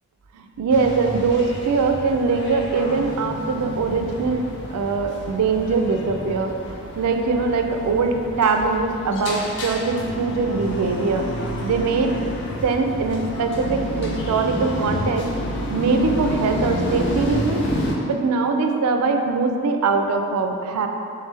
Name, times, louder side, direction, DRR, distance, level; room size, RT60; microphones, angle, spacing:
voice 1, 0.3-12.2 12.6-15.3 15.7-17.7 18.0-20.9, right 4 dB, 90° right, 4 dB, 0.4 m, -22 dB
sound 1, 0.7-17.9, equal, 50° left, 0.4 m, -29 dB
3.6 x 3.3 x 3.2 m, 2.5 s
head